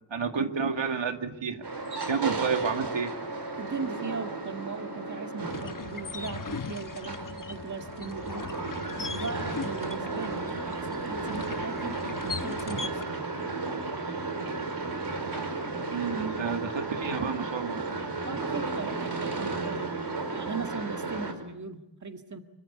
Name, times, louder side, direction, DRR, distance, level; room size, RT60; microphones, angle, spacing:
voice 1, 0.1-1.6 2.1-3.1 15.9-17.9, right 5 dB, 75° right, 5 dB, 2.2 m, -30 dB
sound 1, 1.6-21.3, right 3 dB, 60° right, 4.8 m, -34 dB
voice 2, 3.6-8.5 9.0-13.2 18.2-22.4, right 4 dB, 40° right, 6 dB, 1.9 m, -39 dB
sound 2, 5.5-13.0, left 4 dB, 45° left, 1.2 m, -39 dB
26.0 x 23.5 x 8.5 m, 0.88 s
wide cardioid pair, 90°, 45 cm